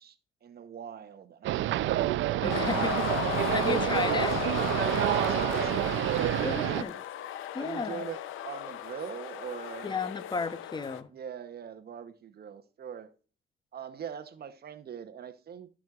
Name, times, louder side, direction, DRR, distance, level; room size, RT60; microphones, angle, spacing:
voice 1, 0.0-2.1 3.3-4.4 5.1-7.0 7.6-9.9 11.1-13.1 13.7-15.7, right 8 dB, 50° right, 0.9 m, -42 dB
sound 1, 1.4-6.8, right 14 dB, 75° right, 0.5 m, -28 dB
voice 2, 2.4-3.0 3.5-4.4 6.4-6.9 7.5-8.0 9.8-11.1, left 4 dB, 20° left, 0.8 m, -33 dB
sound 2, 2.5-11.0, left 12 dB, 85° left, 0.6 m, -35 dB
13.5 x 6.2 x 2.4 m
cardioid pair, 90°, 20 cm